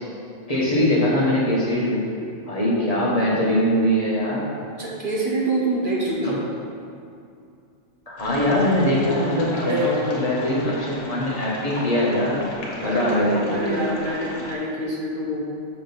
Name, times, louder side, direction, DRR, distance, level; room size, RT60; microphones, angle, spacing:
voice 1, 0.5-2.0 2.4-4.5 6.2-6.4 8.1-12.5 12.8-13.9, left 1 dB, 30° left, -6 dB, 1.6 m, -22 dB
voice 2, 4.7-6.4 9.5-10.0 12.8-15.4, right 1 dB, 45° right, -4 dB, 1.3 m, -26 dB
sound 1, 8.2-14.5, left 1 dB, 70° left, 1.6 m, -36 dB
6.8 x 5.1 x 5.4 m, 2.5 s
omnidirectional pair, 1.3 m